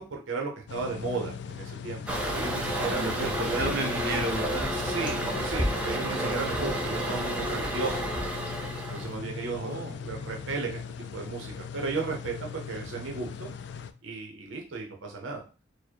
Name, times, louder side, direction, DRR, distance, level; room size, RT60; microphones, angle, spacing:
voice 1, 0.0-3.6 4.8-8.2 8.7-10.8 11.1-13.5 14.0-15.4, right 4 dB, 85° right, 1 dB, 0.8 m, -35 dB
sound 1, 0.7-13.9, left 6 dB, 60° left, 0.3 m, -39 dB
Toilet flush, 2.1-9.2, right 1 dB, 5° right, 0.7 m, -31 dB
voice 2, 2.9-4.9 9.6-10.0, right 1 dB, 55° right, 1 dB, 1.0 m, -33 dB
4.5 x 2.2 x 4.5 m, 0.34 s
head